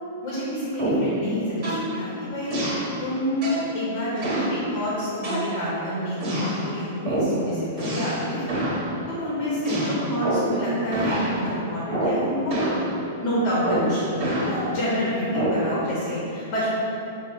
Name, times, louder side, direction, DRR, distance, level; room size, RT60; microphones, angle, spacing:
voice 1, 0.2-2.6 3.0-3.5 3.7-8.4 9.1-12.9 13.1-16.7, equal, 45° left, -7 dB, 0.8 m, -28 dB
sound 1, 0.8-1.2 1.6-1.9 2.5-2.9 3.4-3.7 4.2-4.6 5.2-5.8 6.2-6.6 7.1-7.4 7.8-8.2 8.5-8.8 9.6-10.6 10.9-11.3 11.9-12.2 12.5-12.8 13.6-14.5 15.3-15.7, right 1 dB, 30° right, 0.9 m, -26 dB
3.7 x 2.0 x 4.0 m, 3.0 s
supercardioid pair, 155°, 0 cm